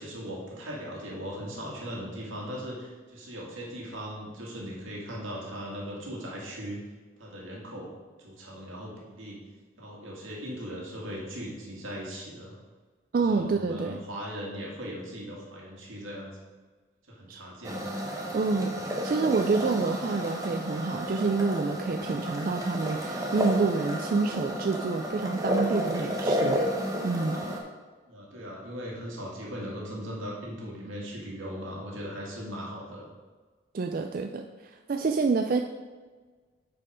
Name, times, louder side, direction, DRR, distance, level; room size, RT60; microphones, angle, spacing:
voice 1, 0.0-6.8 7.2-9.4 9.8-12.6 13.3-16.3 17.1-18.0 28.1-33.1, equal, 85° right, -3 dB, 2.1 m, -39 dB
voice 2, 13.1-14.0 17.3-17.4 18.3-26.6 27.0-27.4 33.7-35.6, right 4 dB, 45° right, 4 dB, 0.3 m, -28 dB
sound 1, 17.6-27.6, equal, 15° right, 0.9 m, -31 dB
8.5 x 4.6 x 5.0 m, 1.4 s
head